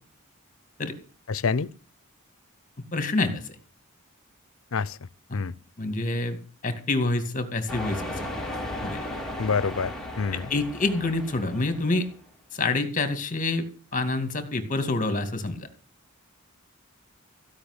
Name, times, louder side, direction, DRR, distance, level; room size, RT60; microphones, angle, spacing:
voice 1, 1.3-1.7 4.7-5.0 5.3-5.5 9.4-10.5, left 5 dB, 70° left, 0.6 m, -27 dB
voice 2, 2.9-3.5 5.3-5.4 5.8-6.4 6.6-8.3 8.8-9.0 10.3-12.1 12.5-13.7 13.9-15.7, left 2 dB, 40° left, 2.3 m, -27 dB
sound 1, 7.7-12.2, left 1 dB, ahead, 2.7 m, -36 dB
16.0 x 5.8 x 9.7 m
head